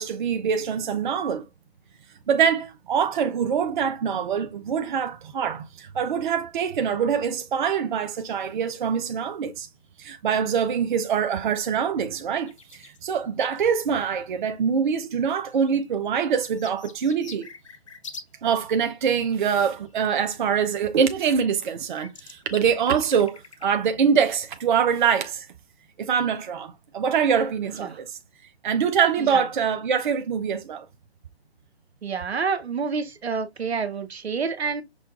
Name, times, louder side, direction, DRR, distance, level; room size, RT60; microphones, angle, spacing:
voice 1, 0.0-1.5 2.3-9.7 10.0-17.5 18.4-25.5 26.0-28.2 28.6-30.9, right 7 dB, 50° right, 0.5 m, -24 dB
sound 1, 12.0-13.0 14.4-14.5 15.5-18.3 18.6-20.1 21.3-21.4 21.5-23.7 24.2-24.3, left 5 dB, 30° left, 0.4 m, -45 dB
voice 2, 32.0-34.8, right 5 dB, 80° right, 0.8 m, -28 dB
6.1 x 2.3 x 2.4 m
figure-of-eight pair, 140°, 32 cm